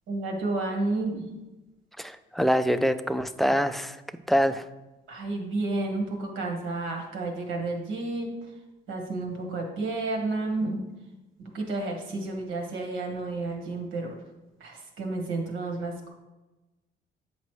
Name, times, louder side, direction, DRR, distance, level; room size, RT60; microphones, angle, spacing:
voice 1, 0.1-1.4 5.1-8.3 8.9-10.8 11.5-14.2 14.6-16.1, right 2 dB, 90° right, 2 dB, 1.4 m, -31 dB
voice 2, 2.0-4.0 4.3-4.6, equal, ahead, 11 dB, 0.3 m, -25 dB
8.1 x 5.1 x 3.2 m, 1.1 s
cardioid pair, 90°, 20 cm